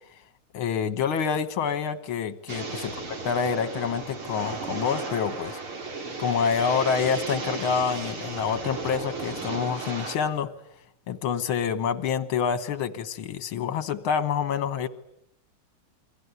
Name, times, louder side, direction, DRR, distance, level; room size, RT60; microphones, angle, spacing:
voice 1, 0.5-5.6 6.2-10.5 11.1-14.9, left 6 dB, 75° left, 13 dB, 2.1 m, -27 dB
sound 1, 2.5-10.2, right 4 dB, 90° right, 4.4 m, -35 dB
28.5 x 23.0 x 8.2 m, 0.73 s
omnidirectional pair, 2.3 m